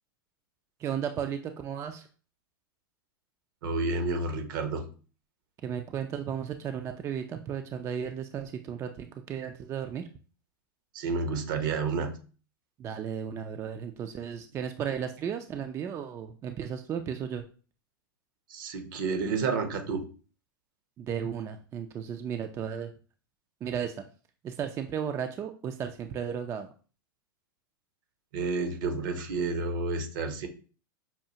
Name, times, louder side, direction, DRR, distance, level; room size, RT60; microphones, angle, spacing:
voice 1, 0.8-2.1 5.6-10.0 12.8-17.4 21.0-22.9 23.6-24.0 24.4-26.7, right 8 dB, 25° right, 6 dB, 0.3 m, -34 dB
voice 2, 3.6-4.9 10.9-12.2 18.5-20.1 28.3-30.5, right 4 dB, 65° right, 7 dB, 0.8 m, -30 dB
5.5 x 2.4 x 2.8 m, 0.38 s
hypercardioid pair, 115°, 12 cm